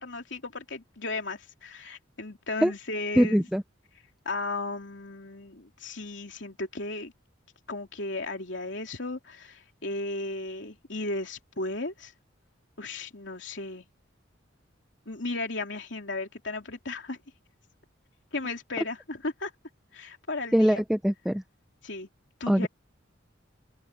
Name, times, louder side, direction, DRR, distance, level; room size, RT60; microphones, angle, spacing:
voice 1, 0.0-3.5 4.3-7.1 7.7-12.1 12.8-13.8 15.1-17.2 18.3-19.5 19.9-20.8 21.8-22.1 22.4-22.7, left 2 dB, 65° left, 3.3 m, -35 dB
voice 2, 3.2-3.6 20.5-21.4 22.5-22.7, equal, ahead, 0.5 m, -22 dB
open air
head